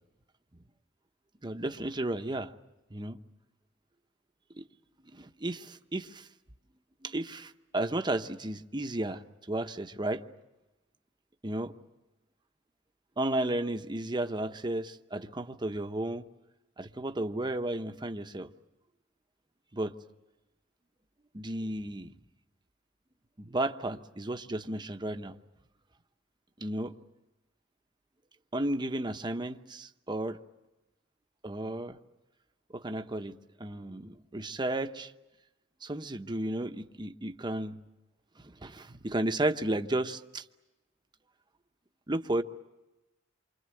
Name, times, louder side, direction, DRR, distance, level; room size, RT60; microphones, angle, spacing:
voice 1, 1.4-2.5 2.9-3.2 4.6-4.7 5.1-6.3 7.0-10.2 11.4-11.7 13.2-16.3 16.8-18.5 19.7-19.9 21.3-22.1 23.4-25.4 26.6-26.9 28.5-30.4 31.4-32.0 32.7-35.1 35.8-37.8 38.4-40.4 42.1-42.4, right 1 dB, 25° right, 7 dB, 0.9 m, -33 dB
28.5 x 25.0 x 7.7 m, 1.0 s
head